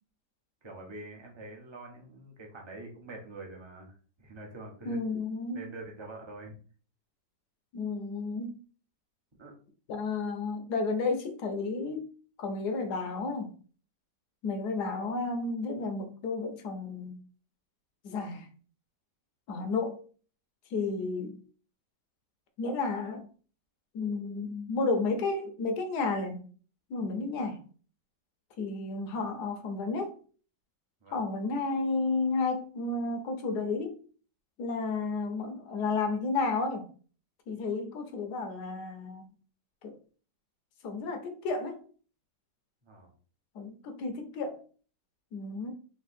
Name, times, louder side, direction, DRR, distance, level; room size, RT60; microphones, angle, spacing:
voice 1, 0.6-5.0 5.5-6.6 9.4-9.5 31.0-31.2 42.8-43.1, right 2 dB, 25° right, 0.6 m, -45 dB
voice 2, 4.8-5.6 7.7-8.5 9.9-12.0 12.4-13.5 14.4-17.1 18.0-18.5 19.5-20.1 20.7-21.4 22.6-23.3 23.9-26.4 26.9-27.6 28.6-30.2 31.1-34.0 34.6-36.9 37.5-39.3 39.8-40.0 40.8-41.8 43.5-44.6 45.3-45.7, left 3 dB, 70° left, 1.3 m, -32 dB
3.5 x 2.9 x 4.2 m
omnidirectional pair, 1.9 m